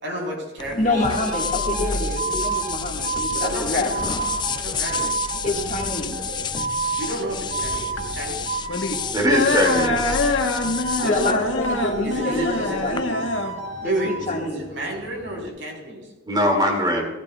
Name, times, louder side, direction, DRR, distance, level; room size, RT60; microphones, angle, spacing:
voice 1, 0.0-1.0 3.3-4.1 4.5-5.1 6.9-8.5 10.9-11.3 12.0-12.8 13.8-16.1, right 1 dB, 75° right, 0 dB, 4.1 m, -30 dB
sound 1, 0.6-13.0, left 6 dB, 25° left, 0.3 m, -31 dB
voice 2, 0.7-3.9 5.4-6.2 11.0-13.2 13.8-14.6, left 2 dB, 40° left, 0 dB, 1.8 m, -27 dB
sound 2, 0.9-9.2 9.7-11.4 11.6-14.3, right 4 dB, 40° right, 1.1 m, -30 dB
sound 3, 5.5-15.5, left 3 dB, 85° left, 1.3 m, -26 dB
voice 3, 9.1-10.2 16.3-17.1, equal, 20° right, 1 dB, 2.4 m, -21 dB
16.0 x 16.0 x 2.4 m, 1.2 s
head